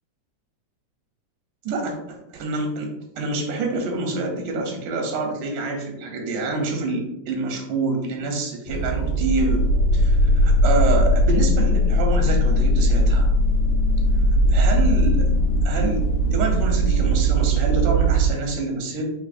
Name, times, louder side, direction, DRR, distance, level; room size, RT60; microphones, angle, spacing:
voice 1, 1.7-9.6 9.9-13.3 14.5-15.3 15.7-19.0, right 3 dB, 85° right, 2 dB, 2.2 m, -27 dB
sound 1, 8.7-18.3, equal, 75° left, 1.3 m, -19 dB
4.9 x 3.6 x 2.5 m, 0.83 s
omnidirectional pair, 3.5 m